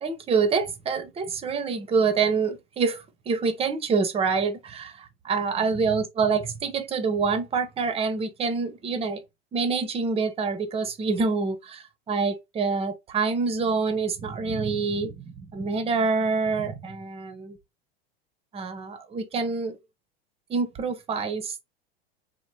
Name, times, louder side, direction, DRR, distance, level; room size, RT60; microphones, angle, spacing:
voice 1, 0.0-9.2 9.5-17.6 18.5-19.8 20.5-21.6, right 4 dB, 20° right, 0.5 m, -26 dB
2.8 x 2.0 x 3.1 m
hypercardioid pair, 110°, 31 cm